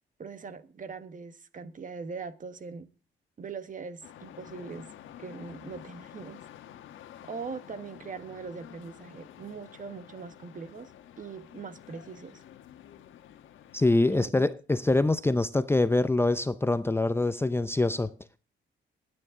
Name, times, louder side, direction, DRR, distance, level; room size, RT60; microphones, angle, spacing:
voice 1, 0.2-2.9 3.4-4.9 5.2-6.4 7.2-10.9 11.2-12.4 14.1-14.3, right 5 dB, 40° right, 1.6 m, -41 dB
sound 1, 4.0-14.2, left 11 dB, 80° left, 1.3 m, -50 dB
voice 2, 13.7-18.1, left 2 dB, 10° left, 0.6 m, -25 dB
21.5 x 9.5 x 3.8 m
cardioid pair, 90°, 20 cm